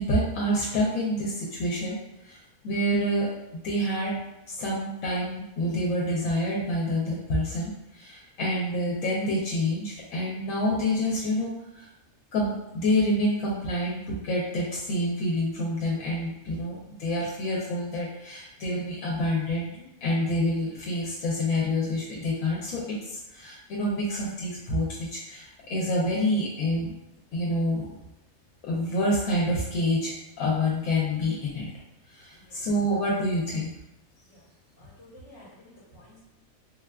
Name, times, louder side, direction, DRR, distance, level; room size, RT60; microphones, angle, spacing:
voice 1, 0.0-2.4 2.6-3.3 3.6-4.2 4.5-11.9 12.3-26.9 27.3-27.8 28.6-31.7 32.1-33.7, left 1 dB, 85° left, -4 dB, 1.0 m, -27 dB
voice 2, 34.8-36.2, left 1 dB, 55° left, -9 dB, 1.1 m, -52 dB
3.9 x 2.3 x 2.2 m, 0.90 s
omnidirectional pair, 1.4 m